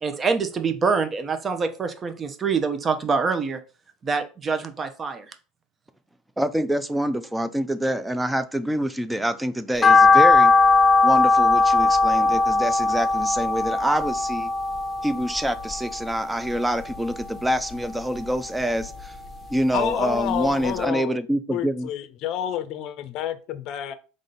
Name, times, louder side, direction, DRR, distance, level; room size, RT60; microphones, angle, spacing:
voice 1, 0.0-3.6 4.0-5.3, right 5 dB, 30° right, 0.9 m, -25 dB
voice 2, 6.4-10.5 11.0-14.5 15.0-19.2 19.5-21.9, right 1 dB, 10° right, 0.6 m, -26 dB
sound 1, 9.8-16.1 16.5-17.6 18.0-19.4 19.8-19.9 20.3-20.4 20.7-20.8, left 3 dB, 10° left, 1.0 m, -19 dB
voice 3, 19.7-21.2 21.5-23.9, left 10 dB, 55° left, 0.6 m, -29 dB
3.7 x 3.2 x 4.1 m
hypercardioid pair, 85°, 0 cm